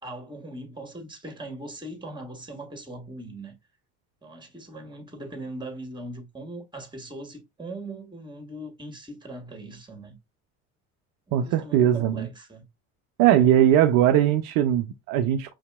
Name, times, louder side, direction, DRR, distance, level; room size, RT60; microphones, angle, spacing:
voice 1, 0.0-3.5 4.2-10.2 11.3-12.6, right 1 dB, 10° right, 1.5 m, -40 dB
voice 2, 11.3-12.3 13.2-15.5, right 11 dB, 60° right, 0.6 m, -20 dB
5.7 x 2.8 x 2.2 m
hypercardioid pair, 75°, 39 cm